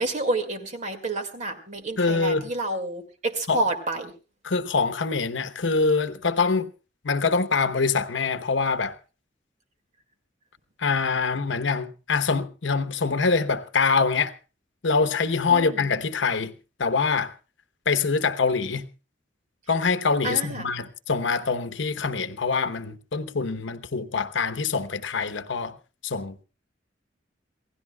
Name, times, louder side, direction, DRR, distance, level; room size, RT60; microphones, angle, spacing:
voice 1, 0.0-4.1 15.5-15.9 20.2-20.7, right 2 dB, 40° right, 2.1 m, -29 dB
voice 2, 2.0-2.5 3.5-3.6 4.4-6.7 7.0-8.9 10.8-14.3 14.8-16.5 16.8-17.3 17.9-18.9 19.7-25.7 26.0-26.4, left 4 dB, 80° left, 1.0 m, -24 dB
27.0 x 16.5 x 2.3 m
head